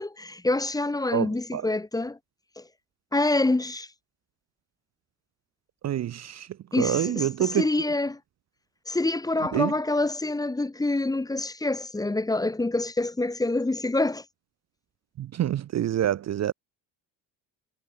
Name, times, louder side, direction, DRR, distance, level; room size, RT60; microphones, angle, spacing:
voice 1, 0.0-2.2 2.6-2.7 3.1-3.9 6.7-7.3 7.5-8.2 8.9-14.2, left 2 dB, 10° left, 0.6 m, -26 dB
voice 2, 1.1-1.7 5.8-7.7 9.5-9.7 15.2-16.5, right 11 dB, 40° right, 0.5 m, -27 dB
supercardioid pair, 65°, 44 cm